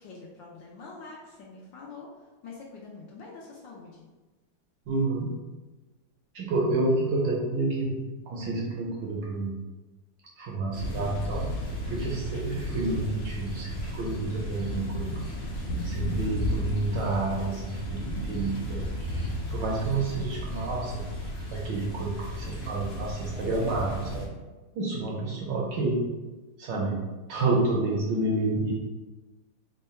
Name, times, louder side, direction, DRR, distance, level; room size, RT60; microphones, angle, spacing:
voice 1, 0.0-4.1 16.0-16.5, left 4 dB, 75° left, -3 dB, 1.2 m, -45 dB
voice 2, 4.9-5.3 6.3-8.0 8.3-9.6 10.4-11.5 11.9-15.1 15.8-21.0 21.5-24.3 24.7-26.0 26.6-27.0 27.3-28.7, right 2 dB, 70° right, -2 dB, 1.1 m, -29 dB
sound 1, 10.7-24.3, equal, 50° left, 0.8 m, -34 dB
3.7 x 2.2 x 4.1 m, 1.2 s
omnidirectional pair, 2.4 m